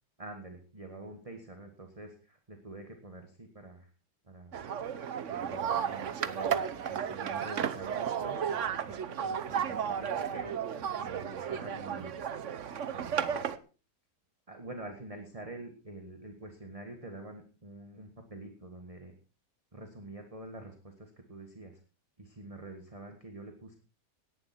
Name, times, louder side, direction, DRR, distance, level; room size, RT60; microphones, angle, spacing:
voice 1, 0.2-3.9 4.2-4.6 5.3-12.1 12.9-13.5 14.5-19.1 19.7-21.8 22.2-23.8, right 2 dB, 20° right, 5 dB, 1.7 m, -47 dB
sound 1, 4.5-13.6, right 8 dB, 50° right, 1.1 m, -33 dB
18.0 x 11.0 x 4.4 m, 0.34 s
omnidirectional pair, 1.8 m